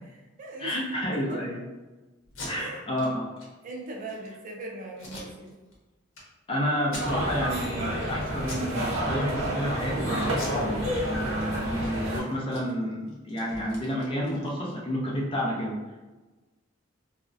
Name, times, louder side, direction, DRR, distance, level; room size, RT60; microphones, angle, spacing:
voice 1, 0.0-0.8 1.1-1.5 2.5-2.8 3.6-5.5, right 2 dB, 40° right, 0 dB, 0.4 m, -40 dB
voice 2, 0.6-1.6 2.5-3.3 6.5-15.8, equal, 25° left, -2 dB, 0.4 m, -30 dB
Packing tape duct tape, 2.2-2.5 2.9-3.1 3.4-3.5 3.9-4.3 5.0-5.8 6.1-6.2 6.8-7.5 7.9-8.1 8.4-8.7 9.0-9.7 10.3-11.4 11.7-11.9 12.2-14.8, left 1 dB, 75° left, 0.7 m, -42 dB
sound 1, 7.0-12.2, equal, 85° right, 0.6 m, -29 dB
2.4 x 2.0 x 2.5 m, 1.2 s
head